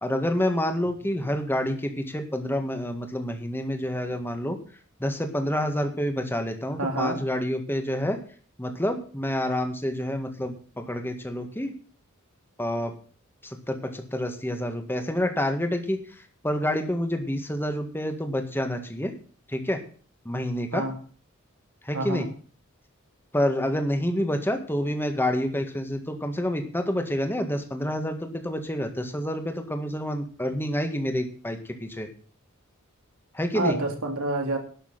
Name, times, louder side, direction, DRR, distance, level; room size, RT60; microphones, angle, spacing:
voice 1, 0.0-4.6 5.0-8.2 8.6-11.7 12.6-12.9 13.4-16.0 16.4-19.1 19.5-19.8 20.2-20.8 21.8-22.3 23.3-32.1 33.3-33.8, left 1 dB, 10° left, 5 dB, 1.7 m, -28 dB
voice 2, 6.8-7.2 20.7-21.0 21.9-22.3 33.5-34.6, right 2 dB, 85° right, 3 dB, 2.8 m, -27 dB
12.0 x 6.7 x 7.8 m, 0.42 s
head